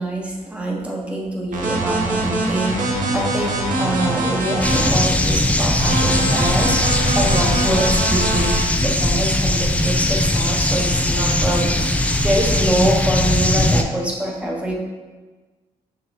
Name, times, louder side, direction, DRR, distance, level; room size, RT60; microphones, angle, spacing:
voice 1, 0.0-8.5 8.8-14.7, right 1 dB, 10° right, -2 dB, 0.9 m, -25 dB
sound 1, 1.5-4.9 5.8-8.6, right 2 dB, 65° right, 1.0 m, -23 dB
sound 2, 4.6-13.8, left 1 dB, 10° left, 0.3 m, -19 dB
6.2 x 2.1 x 3.5 m, 1.3 s
cardioid pair, 85°, 15 cm